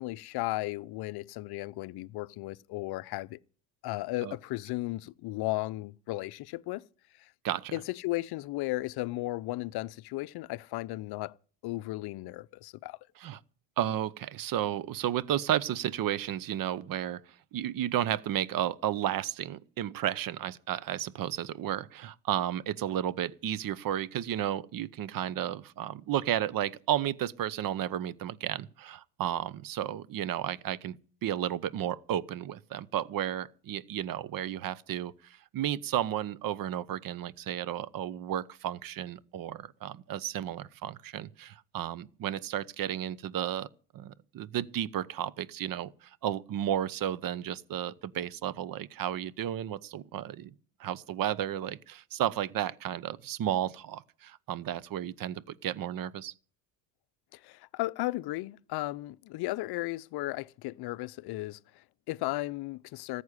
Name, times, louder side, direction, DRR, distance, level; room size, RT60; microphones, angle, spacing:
voice 1, 0.0-3.4 3.8-6.8 7.2-7.3 7.7-11.3 11.6-13.0 57.3-63.2, left 19 dB, 55° left, 0.7 m, -35 dB
voice 2, 7.4-7.8 13.2-13.4 13.8-43.7 43.9-50.5 50.8-56.3, right 11 dB, 45° right, 0.9 m, -33 dB
14.0 x 8.3 x 9.8 m
supercardioid pair, 95°, 47 cm